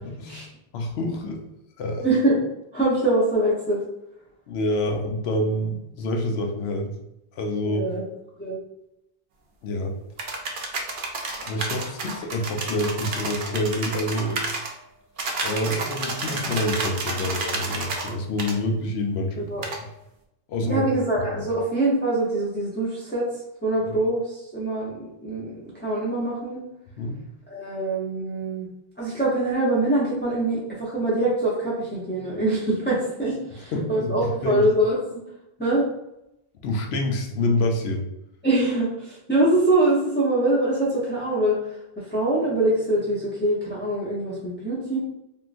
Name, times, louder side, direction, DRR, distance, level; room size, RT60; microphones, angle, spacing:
voice 1, 0.0-1.4 1.8-2.0 4.5-6.9 7.4-7.9 9.6-9.9 11.4-14.4 15.4-19.5 20.5-20.8 21.3-21.5 27.0-27.2 33.7-34.6 36.6-38.0, left 1 dB, 85° left, 3 dB, 0.8 m, -27 dB
voice 2, 2.0-2.4 2.7-3.8 7.6-8.0 8.4-8.6 15.6-15.7 16.1-16.4 19.4-19.6 20.6-23.3 23.6-26.6 27.5-28.7 29.0-35.2 35.6-35.8 38.4-45.0, right 1 dB, 10° left, -8 dB, 0.6 m, -24 dB
sound 1, 10.2-14.7 15.2-18.1 18.4-18.5 19.6-19.8, right 3 dB, 60° right, 0.7 m, -30 dB
3.6 x 2.4 x 2.5 m, 0.86 s
omnidirectional pair, 1.0 m